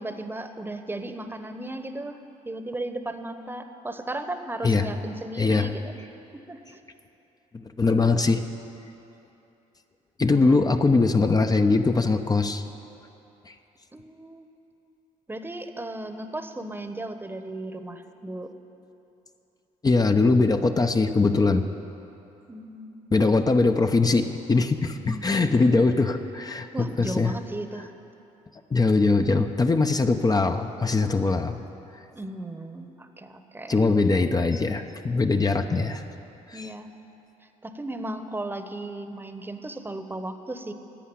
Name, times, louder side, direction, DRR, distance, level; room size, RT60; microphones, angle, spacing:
voice 1, 0.0-2.2 2.4-5.8 6.3-6.6 10.3-10.6 13.9-14.5 15.3-18.5 22.5-23.3 26.7-27.9 32.1-33.9 36.5-36.9 37.6-40.7, right 1 dB, 15° right, 8 dB, 1.1 m, -35 dB
voice 2, 5.4-5.7 7.5-8.4 10.2-12.6 13.5-13.6 19.8-21.7 23.1-27.3 28.7-31.6 33.7-36.0 36.5-36.7, left 3 dB, 25° left, 6 dB, 0.8 m, -22 dB
11.5 x 8.3 x 9.9 m, 3.0 s
supercardioid pair, 70°, 15 cm